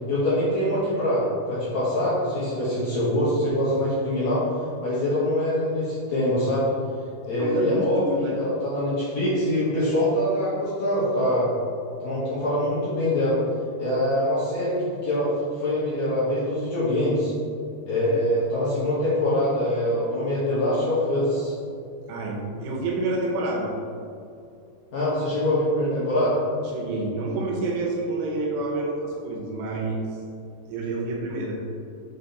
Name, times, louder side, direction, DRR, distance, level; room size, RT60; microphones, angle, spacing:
voice 1, 0.1-4.4 4.8-6.7 7.2-11.5 12.0-13.4 13.8-15.3 15.6-17.3 17.8-21.5 24.9-26.4, left 1 dB, 85° left, -11 dB, 1.6 m, -24 dB
voice 2, 7.4-8.4 18.0-18.2 22.1-23.7 26.7-30.0 30.7-31.6, right 2 dB, 75° right, -2 dB, 2.9 m, -28 dB
7.3 x 4.2 x 4.0 m, 2.4 s
omnidirectional pair, 5.5 m